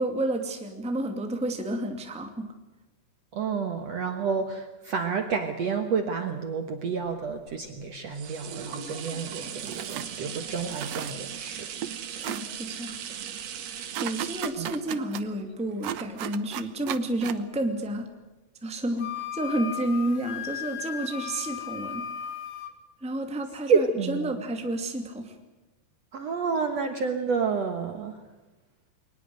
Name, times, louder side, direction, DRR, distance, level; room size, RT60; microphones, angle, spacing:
voice 1, 0.0-2.5 12.1-13.0 14.0-18.1 18.6-22.0 23.0-25.3, right 1 dB, ahead, 4 dB, 1.6 m, -30 dB
voice 2, 3.3-11.7 14.6-14.7 23.7-24.3 26.1-28.2, right 5 dB, 60° right, 6 dB, 2.0 m, -29 dB
sound 1, 7.2-16.9 17.4-17.5, right 9 dB, 90° right, 3.8 m, -39 dB
sound 2, 9.6-10.1 10.6-11.5 11.8-11.9 12.2-12.4 13.9-15.2 15.8-17.4, right 11 dB, 75° right, 1.5 m, -34 dB
Wind instrument woodwind instrument, 19.0-22.7, left 9 dB, 45° left, 2.4 m, -36 dB
23.0 x 20.0 x 7.9 m, 1.1 s
omnidirectional pair, 4.3 m